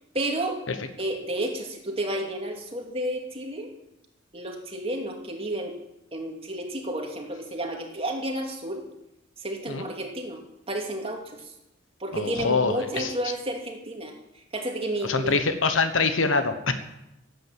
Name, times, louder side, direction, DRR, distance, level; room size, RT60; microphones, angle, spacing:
voice 1, 0.1-0.6 1.0-3.7 4.3-5.8 6.1-8.9 9.4-10.4 10.7-11.5 12.0-15.5, right 1 dB, 30° right, 1 dB, 2.5 m, -31 dB
voice 2, 12.1-13.1 15.0-16.7, left 4 dB, 80° left, 9 dB, 1.2 m, -24 dB
16.0 x 9.1 x 7.5 m, 0.89 s
head